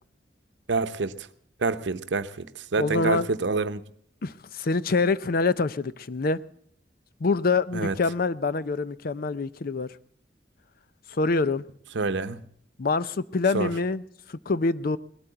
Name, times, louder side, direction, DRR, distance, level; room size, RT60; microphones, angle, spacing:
voice 1, 0.7-1.3 1.6-3.8 7.7-7.9 11.9-12.5 13.5-13.7, right 3 dB, 85° right, 0.8 m, -27 dB
voice 2, 2.8-3.3 4.2-6.4 7.2-10.0 11.1-11.6 12.8-14.0 14.3-15.0, left 3 dB, 55° left, 0.6 m, -25 dB
19.5 x 8.5 x 7.9 m
head